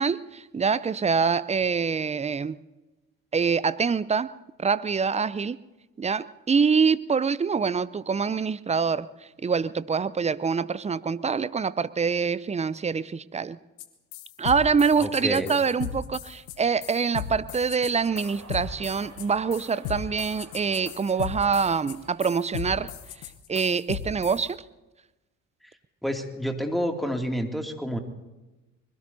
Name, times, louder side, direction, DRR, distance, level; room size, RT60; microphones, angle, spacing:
voice 1, 0.0-2.6 3.3-4.3 4.6-5.6 6.0-9.1 9.4-13.6 14.4-22.9 23.5-24.6, right 5 dB, 15° right, 17 dB, 0.6 m, -25 dB
sound 1, 13.8-13.9 14.1-24.4, left 11 dB, 70° left, 1.2 m, -37 dB
voice 2, 15.0-15.5 26.0-28.0, equal, ahead, 3 dB, 2.4 m, -29 dB
sound 2, 18.0-23.2, right 3 dB, 40° right, 4.0 m, -50 dB
24.0 x 21.5 x 2.7 m, 1.1 s
figure-of-eight pair, 50°, 43 cm